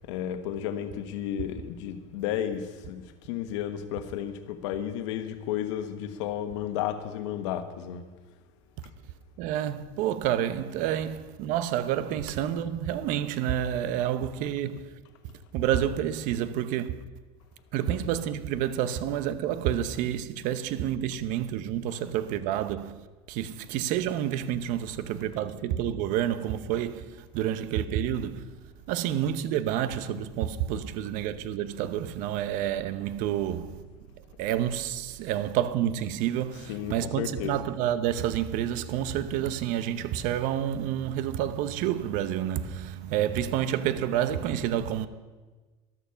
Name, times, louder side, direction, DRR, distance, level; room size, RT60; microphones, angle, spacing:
voice 1, 0.1-8.1 36.7-37.6, left 10 dB, 80° left, 1.3 m, -33 dB
voice 2, 9.4-14.9 15.5-17.0 17.7-23.0 23.3-28.5 28.9-33.8 34.4-45.1, right 10 dB, 60° right, 0.9 m, -29 dB
13.5 x 12.0 x 5.8 m
supercardioid pair, 125°, 15 cm